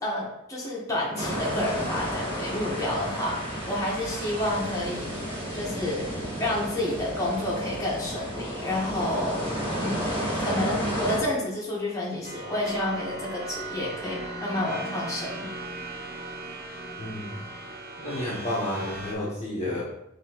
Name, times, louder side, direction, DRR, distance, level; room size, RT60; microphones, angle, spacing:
voice 1, 0.0-3.4 3.7-5.1 5.5-6.1 6.4-9.5 9.8-15.5, left 1 dB, 15° left, -6 dB, 1.2 m, -30 dB
sound 1, 1.1-11.2, equal, 25° right, 1.7 m, -32 dB
sound 2, 12.2-19.2, right 2 dB, 50° right, 0.8 m, -38 dB
voice 2, 17.0-17.4 18.0-19.8, left 1 dB, 35° left, -7 dB, 1.0 m, -31 dB
6.0 x 2.9 x 2.9 m, 0.82 s
head